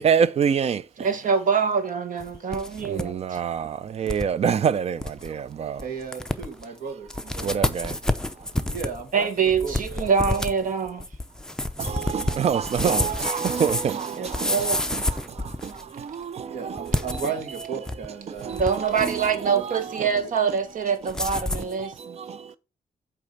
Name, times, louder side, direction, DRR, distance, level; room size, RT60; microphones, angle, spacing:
voice 1, 0.0-0.8 2.9-5.8 7.4-7.9 11.8-15.0 15.6-15.7 16.0-17.2 18.5-19.2 19.6-19.8 22.3-22.4, right 7 dB, 50° right, 0.5 m, -26 dB
voice 2, 1.0-3.4 9.1-11.1 13.3-13.5 14.2-14.8 18.5-22.2, right 6 dB, 70° right, 1.4 m, -25 dB
sound 1, 2.2-3.1 3.4-3.5 4.1-4.3 4.7-4.8 5.0-5.3 5.8-5.9 6.1-6.6 7.1-15.9 16.8-18.1 18.4-19.4 21.1-21.7, left 1 dB, 5° left, 0.5 m, -29 dB
voice 3, 5.8-7.5 8.7-9.3 9.6-10.4 16.4-18.5 19.4-19.6 20.0-20.3, right 6 dB, 90° right, 1.9 m, -35 dB
8.4 x 3.5 x 5.4 m
wide cardioid pair, 135°, 14 cm